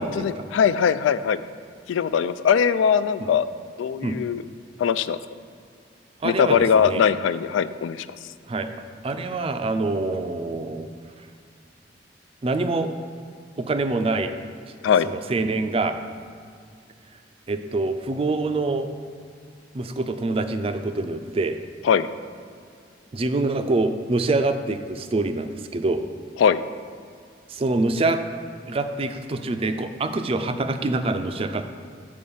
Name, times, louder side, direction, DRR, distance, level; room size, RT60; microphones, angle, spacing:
voice 1, 0.0-1.4 1.9-3.5 3.8-4.4 4.8-5.2 6.2-8.1 14.8-15.1 21.8-22.1 26.4-26.6, left 7 dB, 90° left, 14 dB, 0.3 m, -21 dB
voice 2, 6.2-7.0 8.5-8.7 9.0-10.9 12.4-12.9 13.6-14.3 15.0-16.0 17.5-18.9 19.7-21.6 23.1-26.0 27.5-28.2 28.7-31.6, right 2 dB, 30° right, 8 dB, 0.4 m, -25 dB
6.7 x 5.1 x 5.5 m, 2.3 s
head